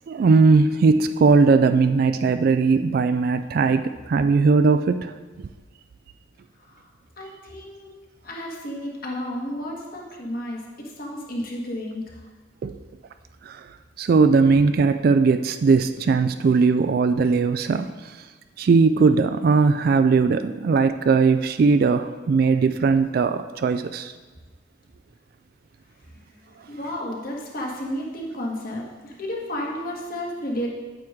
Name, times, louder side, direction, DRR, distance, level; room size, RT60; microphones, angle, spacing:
voice 1, 0.1-3.8 4.1-5.1 12.6-12.8 13.5-13.6 14.0-18.2 18.6-24.1, right 4 dB, 55° right, 9 dB, 0.3 m, -19 dB
voice 2, 7.2-7.9 8.2-12.2 26.1-26.4 26.7-30.7, left 1 dB, 50° left, -2 dB, 1.7 m, -32 dB
8.9 x 7.8 x 3.7 m, 1.3 s
head